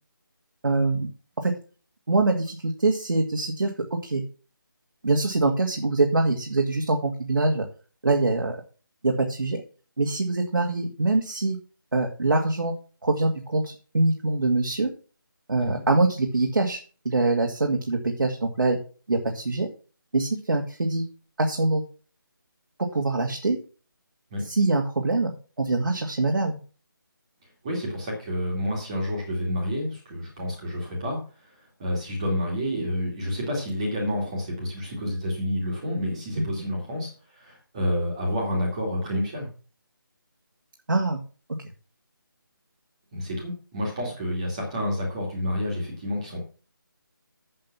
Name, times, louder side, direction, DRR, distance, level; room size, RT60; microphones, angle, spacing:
voice 1, 0.6-1.1 1.4-1.5 2.1-4.2 5.0-7.6 8.0-8.6 9.0-9.6 10.0-11.6 11.9-12.7 13.0-14.9 15.5-16.8 17.1-18.8 19.1-19.7 20.1-21.1 21.4-21.8 22.9-23.6 24.4-25.3 25.6-26.6 36.4-36.5 40.9-41.2, right 2 dB, 75° right, 1 dB, 2.1 m, -24 dB
voice 2, 27.6-31.2 31.4-39.5 43.1-46.4, left 1 dB, 15° right, -1 dB, 2.3 m, -29 dB
7.8 x 7.7 x 6.0 m, 0.38 s
figure-of-eight pair, 175°, 12 cm